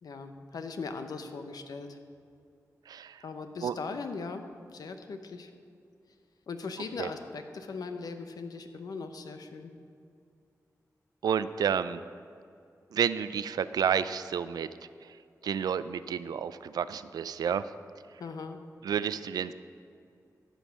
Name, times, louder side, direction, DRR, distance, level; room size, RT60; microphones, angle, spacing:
voice 1, 0.0-2.0 3.2-4.4 4.7-5.5 6.5-9.7 18.2-18.6, left 4 dB, 75° left, 7 dB, 0.8 m, -39 dB
voice 2, 11.2-12.0 12.9-14.7 15.4-17.6 18.8-19.5, right 8 dB, 85° right, 14 dB, 0.3 m, -30 dB
14.0 x 5.4 x 6.2 m, 2.4 s
cardioid pair, 60°, 7 cm